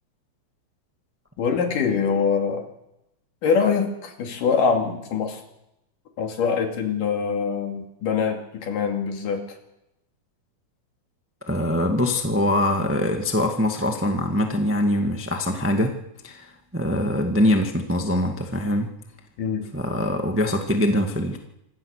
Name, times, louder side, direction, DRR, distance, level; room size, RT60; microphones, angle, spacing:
voice 1, 1.4-2.7 3.4-5.4 6.2-9.4 19.4-19.7, left 6 dB, 85° left, 3 dB, 4.0 m, -24 dB
voice 2, 11.5-15.9 16.2-18.9 19.7-21.4, left 1 dB, 10° right, 3 dB, 0.8 m, -23 dB
25.5 x 15.5 x 6.6 m, 0.86 s
omnidirectional pair, 3.7 m